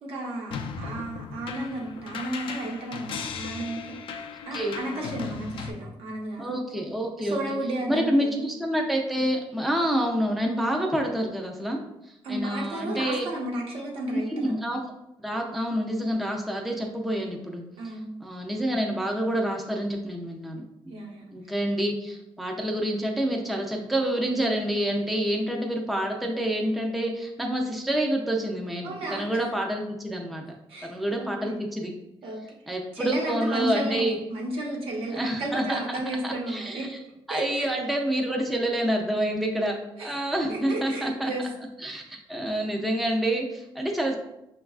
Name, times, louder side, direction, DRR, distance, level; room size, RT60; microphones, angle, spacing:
voice 1, 0.0-3.8 4.5-6.5 7.2-8.4 12.2-14.5 17.8-18.2 20.9-21.3 28.8-29.3 30.7-31.5 32.2-32.4 32.9-36.9 37.3-37.7 38.2-38.3 39.0-39.4 40.0-40.2 40.5-41.5, right 1 dB, 75° right, -1 dB, 1.0 m, -33 dB
sound 1, 0.5-5.7, left 6 dB, 65° left, 0.4 m, -37 dB
voice 2, 6.4-7.4 7.9-11.8 12.3-13.3 14.1-14.8 15.2-17.6 18.2-21.1 21.3-30.4 30.9-31.9 32.7-34.2 35.1-35.8 36.2-37.0 37.3-41.3 41.8-44.2, right 1 dB, ahead, 1 dB, 0.4 m, -28 dB
5.9 x 2.3 x 2.3 m, 0.87 s
cardioid pair, 145°, 10 cm